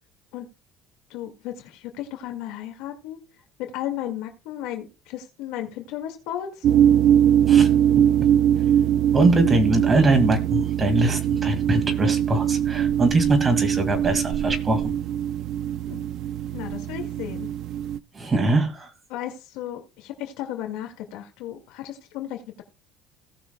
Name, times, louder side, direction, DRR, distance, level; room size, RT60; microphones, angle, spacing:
voice 1, 1.1-3.2 3.7-6.7 15.9-16.0 16.5-17.5 19.1-22.6, left 12 dB, 80° left, 4 dB, 2.0 m, -34 dB
sound 1, 6.6-18.0, right 10 dB, 50° right, 0.4 m, -21 dB
voice 2, 9.1-14.9 18.1-18.9, right 2 dB, 20° right, 6 dB, 2.2 m, -22 dB
18.0 x 6.0 x 2.3 m, 0.33 s
cardioid pair, 140°, 0 cm